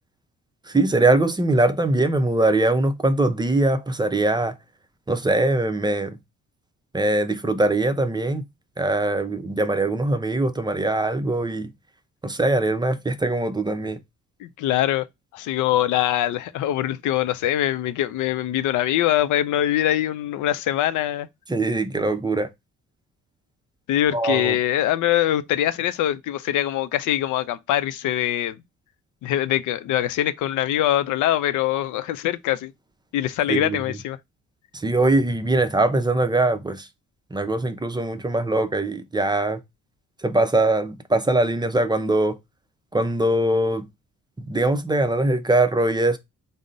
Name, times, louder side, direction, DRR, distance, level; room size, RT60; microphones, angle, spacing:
voice 1, 0.7-4.5 5.1-6.2 6.9-8.5 8.8-11.7 12.2-14.0 21.5-22.5 24.1-24.6 33.5-33.8 34.7-36.9 37.3-39.6 40.2-42.4 42.9-43.9 44.4-46.2, right 2 dB, 15° right, 0.5 m, -22 dB
voice 2, 14.4-15.1 15.3-21.3 23.9-28.6 29.2-32.7 33.1-34.2, left 12 dB, 80° left, 0.5 m, -23 dB
3.7 x 2.0 x 3.8 m
cardioid pair, 90°, 30 cm